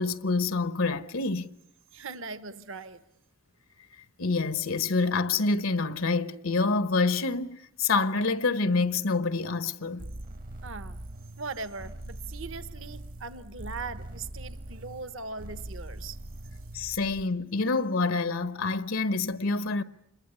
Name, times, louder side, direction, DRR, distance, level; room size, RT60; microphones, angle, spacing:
voice 1, 0.0-1.5 4.2-10.0 16.7-19.8, left 3 dB, 75° left, 1.1 m, -27 dB
voice 2, 1.9-3.0 10.6-11.0 11.4-16.2, right 4 dB, 65° right, 1.2 m, -40 dB
sound 1, 10.0-17.3, right 1 dB, 45° right, 1.0 m, -42 dB
27.0 x 22.0 x 9.7 m
head